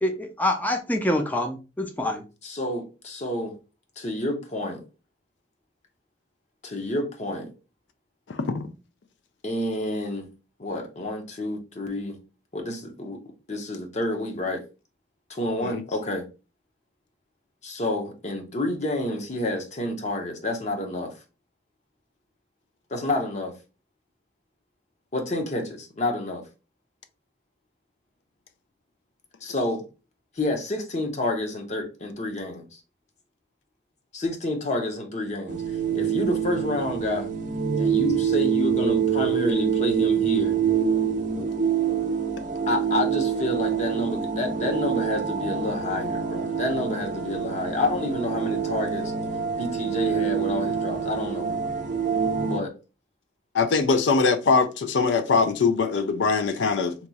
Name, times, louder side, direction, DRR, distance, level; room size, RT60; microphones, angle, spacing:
voice 1, 0.0-2.2, left 1 dB, 10° left, 0.4 m, -26 dB
voice 2, 2.4-3.5 4.0-4.8 6.6-7.5 9.4-10.2 10.6-12.2 12.5-13.2 13.5-14.6 15.3-16.2 17.6-21.1 22.9-23.5 25.1-26.4 29.4-29.8 30.4-32.8 34.1-35.6 35.9-37.3 37.8-40.6 42.7-49.1 49.5-51.5 52.4-52.7, left 1 dB, 40° left, 0.7 m, -29 dB
sound 1, 35.5-52.6, right 7 dB, 45° right, 0.5 m, -26 dB
voice 3, 53.5-56.9, left 4 dB, 90° left, 0.4 m, -22 dB
2.9 x 2.3 x 3.9 m
head